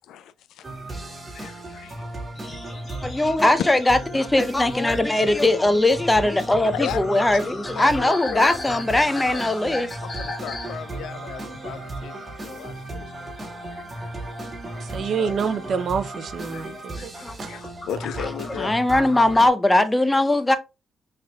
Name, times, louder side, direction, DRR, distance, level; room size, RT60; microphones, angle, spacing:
voice 1, 0.1-1.0 1.3-2.0 3.2-3.4 4.0-4.3 6.7-7.4 7.7-9.0 9.3-9.5 10.0-13.0 13.7-14.1 14.9-15.4 16.5-16.7 17.0-18.7, left 9 dB, 80° left, 0.3 m, -36 dB
sound 1, 0.6-19.5, right 2 dB, 20° right, 1.7 m, -36 dB
sound 2, 2.3-12.8 13.1-13.7 14.0-15.5 16.0-16.2 16.5-16.8 17.3-19.4, left 2 dB, 30° left, 1.0 m, -39 dB
voice 2, 3.0-10.0 17.2-17.4 18.2-18.3 18.6-20.6, left 1 dB, 15° left, 0.5 m, -20 dB
voice 3, 14.9-17.1 17.4-17.5, right 6 dB, 55° right, 0.5 m, -27 dB
5.4 x 3.3 x 2.3 m
cardioid pair, 90°, 0 cm